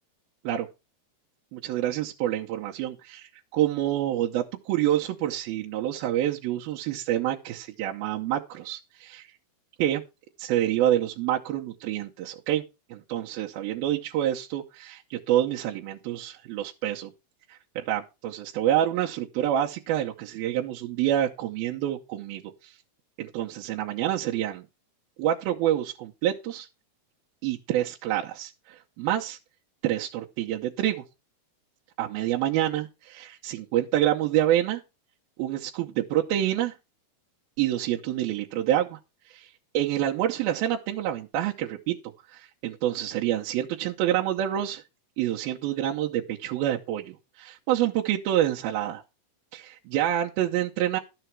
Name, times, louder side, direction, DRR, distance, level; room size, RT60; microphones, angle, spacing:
voice 1, 1.5-9.3 9.8-10.0 10.4-12.6 12.9-17.1 17.5-22.8 23.2-24.7 25.2-26.7 27.4-29.4 29.8-31.0 32.0-34.8 35.4-36.7 37.6-39.0 39.3-39.5 39.7-42.0 42.3-44.8 45.2-49.0 49.5-51.0, right 12 dB, 80° right, 2.7 m, -27 dB
12.5 x 7.0 x 4.6 m
omnidirectional pair, 4.4 m